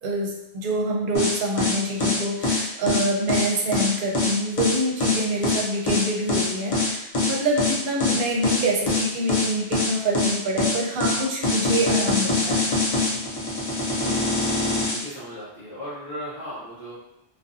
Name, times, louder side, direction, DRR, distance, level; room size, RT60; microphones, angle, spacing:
voice 1, 0.0-12.7, right 1 dB, 60° right, -1 dB, 0.7 m, -26 dB
sound 1, 1.1-15.0, left 3 dB, 50° left, 0.4 m, -23 dB
voice 2, 14.6-17.0, equal, 25° left, -12 dB, 0.8 m, -37 dB
2.5 x 2.2 x 2.5 m, 0.86 s
omnidirectional pair, 1.1 m